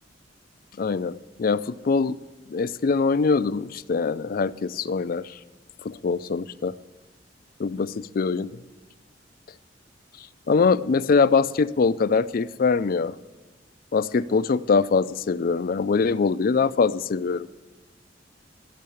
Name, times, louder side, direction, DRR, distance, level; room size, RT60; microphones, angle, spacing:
voice 1, 0.8-2.2 2.5-5.4 5.8-6.7 7.6-8.6 10.2-13.2 13.9-17.5, left 4 dB, 50° left, 15 dB, 0.4 m, -23 dB
13.5 x 6.6 x 8.5 m, 1.2 s
head